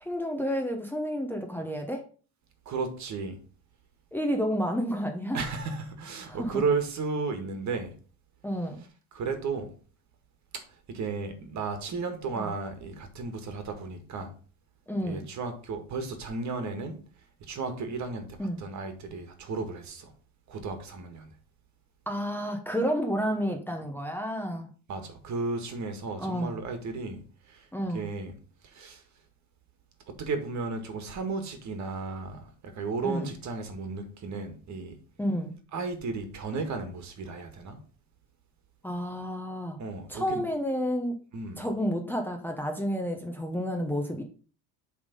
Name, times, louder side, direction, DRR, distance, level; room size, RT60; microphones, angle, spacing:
voice 1, 0.0-2.0 4.1-5.4 6.3-6.5 8.4-8.8 12.3-12.5 14.9-15.2 18.4-18.6 22.1-24.7 26.2-26.6 27.7-28.1 33.0-33.3 35.2-35.5 38.8-39.8 40.1-41.2 41.6-44.2, equal, 5° left, 1 dB, 0.9 m, -30 dB
voice 2, 2.7-3.4 5.3-7.9 9.1-9.7 10.5-14.3 15.0-17.0 17.5-20.1 20.5-21.3 24.9-27.7 27.9-28.3 28.6-29.0 30.1-35.0 35.7-37.8 39.8-40.4 41.3-41.6, right 4 dB, 45° right, 7 dB, 1.7 m, -34 dB
7.7 x 3.7 x 5.2 m, 0.40 s
supercardioid pair, 120°, 40 cm